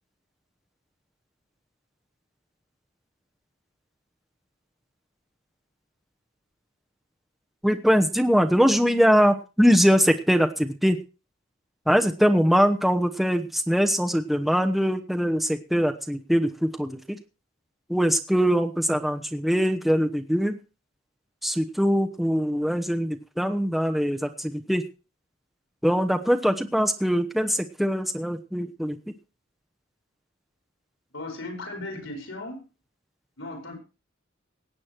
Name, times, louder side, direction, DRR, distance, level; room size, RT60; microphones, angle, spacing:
voice 1, 7.6-11.0 11.9-17.2 17.9-20.6 21.4-24.8 25.8-29.0, equal, ahead, 5 dB, 1.0 m, -22 dB
voice 2, 31.1-32.7 33.4-33.8, left 2 dB, 85° left, 3 dB, 5.5 m, -36 dB
18.0 x 8.5 x 4.6 m, 0.32 s
head